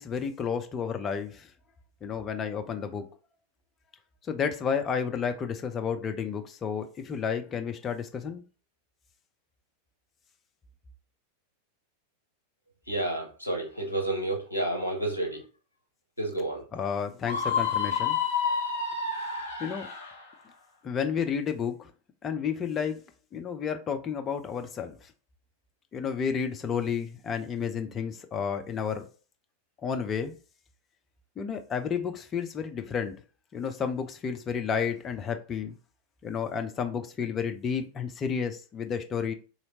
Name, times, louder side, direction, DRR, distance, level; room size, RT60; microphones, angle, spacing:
voice 1, 0.0-1.5 2.0-3.1 4.2-8.4 16.7-18.2 19.6-19.9 20.8-21.9 22.2-23.0 23.3-25.1 25.9-29.1 29.8-30.4 31.4-33.1 33.5-35.8 36.2-39.3, left 6 dB, 25° left, 0.5 m, -31 dB
voice 2, 12.9-15.4 16.2-16.6, right 1 dB, 90° right, 0.9 m, -30 dB
Screaming, 17.2-20.2, left 6 dB, 60° left, 0.8 m, -29 dB
3.2 x 2.8 x 2.8 m
figure-of-eight pair, 90°, 0 cm